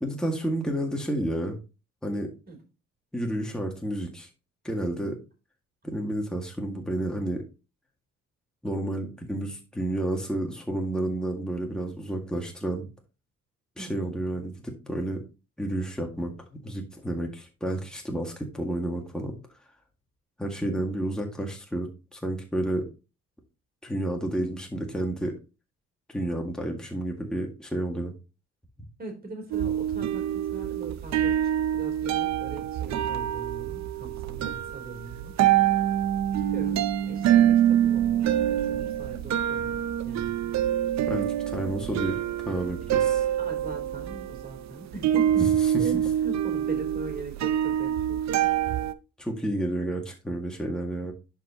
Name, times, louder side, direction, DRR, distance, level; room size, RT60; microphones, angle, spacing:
voice 1, 0.0-1.6 2.0-2.3 3.1-4.3 4.6-5.2 5.8-7.4 8.6-12.9 13.8-15.2 15.6-19.4 20.4-22.9 23.8-25.4 26.1-28.1 41.1-43.2 49.2-51.1, right 1 dB, ahead, 1 dB, 1.9 m, -31 dB
voice 2, 13.8-14.1 29.0-35.4 36.4-39.7 40.0-40.5 43.4-45.4 45.8-48.6 51.0-51.1, right 3 dB, 30° right, 1 dB, 3.5 m, -40 dB
sound 1, 29.5-48.9, right 11 dB, 65° right, 0.6 m, -26 dB
10.5 x 4.8 x 2.9 m, 0.31 s
cardioid pair, 90°, 30 cm